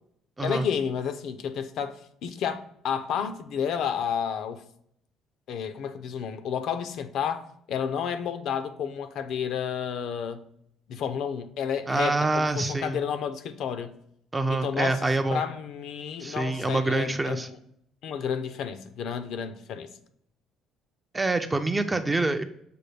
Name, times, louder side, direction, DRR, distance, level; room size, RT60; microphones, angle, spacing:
voice 1, 0.4-4.6 5.5-10.4 10.9-14.0 14.5-15.0 15.3-17.6 18.0-19.9, left 7 dB, 65° left, 0.5 m, -31 dB
voice 2, 11.9-13.0 14.3-15.4 16.2-17.5 21.1-22.4, right 2 dB, 15° right, 0.4 m, -26 dB
6.6 x 2.2 x 3.2 m
cardioid pair, 110°, 0 cm